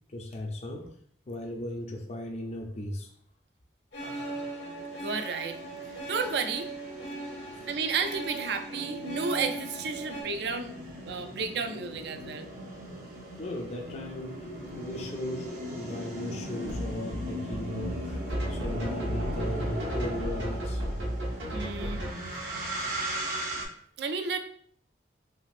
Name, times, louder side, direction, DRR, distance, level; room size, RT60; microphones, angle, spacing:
voice 1, 0.1-1.0 1.3-3.1 4.4-4.5 7.5-7.6 8.7-8.9 12.9-13.0 13.4-18.2 18.5-20.8, left 1 dB, 35° left, 2 dB, 0.4 m, -37 dB
sound 1, 3.9-10.2, right 2 dB, 80° left, 1.0 m, -39 dB
sound 2, 4.0-23.6, equal, 50° right, 0.8 m, -39 dB
voice 2, 5.0-5.6 6.1-6.7 7.7-12.5 21.5-22.0 24.0-24.4, right 5 dB, 65° right, 8 dB, 0.3 m, -32 dB
sound 3, 16.6-22.1, equal, 90° right, 1.1 m, -33 dB
3.4 x 2.8 x 2.4 m, 0.62 s
head